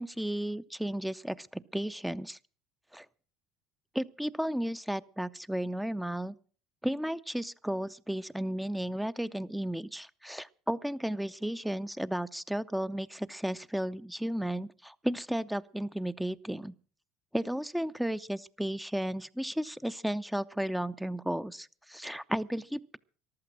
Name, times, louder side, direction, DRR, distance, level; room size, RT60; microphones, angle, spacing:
voice 1, 0.0-2.4 2.9-3.1 3.9-6.3 6.8-16.7 17.3-23.0, right 1 dB, 5° right, 15 dB, 0.6 m, -34 dB
14.5 x 12.0 x 6.1 m, 0.42 s
hypercardioid pair, 65°, 0 cm